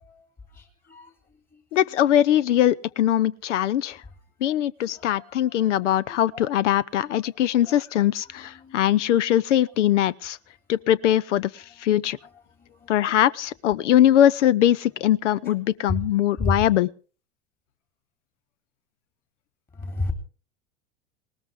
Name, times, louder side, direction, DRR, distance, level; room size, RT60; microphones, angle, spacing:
voice 1, 1.7-4.0 4.4-10.4 10.7-12.2 12.9-16.9, left 11 dB, 65° left, 0.7 m, -21 dB
voice 2, 19.8-20.1, left 2 dB, 20° left, 3.2 m, -26 dB
19.5 x 19.0 x 3.5 m
figure-of-eight pair, 80°, 39 cm